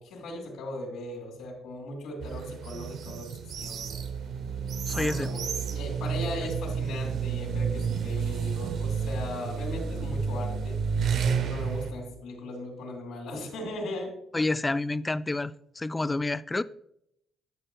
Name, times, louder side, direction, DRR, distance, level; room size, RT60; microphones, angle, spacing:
voice 1, 0.0-4.0 4.9-5.4 5.7-10.8 11.4-14.2, left 1 dB, 85° left, 2.8 m, -38 dB
sound 1, 2.2-11.9, right 6 dB, 70° right, 0.7 m, -31 dB
voice 2, 4.9-5.3 14.3-16.6, left 2 dB, 20° left, 0.3 m, -29 dB
10.5 x 6.3 x 2.3 m
cardioid pair, 90°, 0 cm